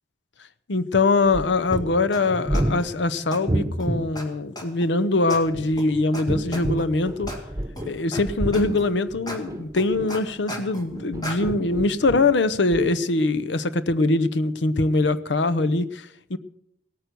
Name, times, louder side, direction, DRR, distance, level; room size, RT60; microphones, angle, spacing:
voice 1, 0.7-7.3 7.8-16.4, left 3 dB, 85° left, 0.7 m, -23 dB
sound 1, 1.2-4.1 5.3-8.0 8.2-10.4 10.9-12.4 12.7-12.8, right 1 dB, 20° right, 1.2 m, -29 dB
sound 2, 1.7-1.8 2.1-2.2 2.5-2.9 3.3-3.4 3.8-3.9 4.1-4.2 4.6-4.9 5.3-5.4 5.8-5.9 6.1-6.2 6.5-6.8 7.3-7.4 7.8-8.2 8.5-8.9 9.3-9.4 9.8-10.9 11.2-11.4, left 1 dB, 20° left, 2.1 m, -35 dB
17.0 x 9.1 x 6.8 m
head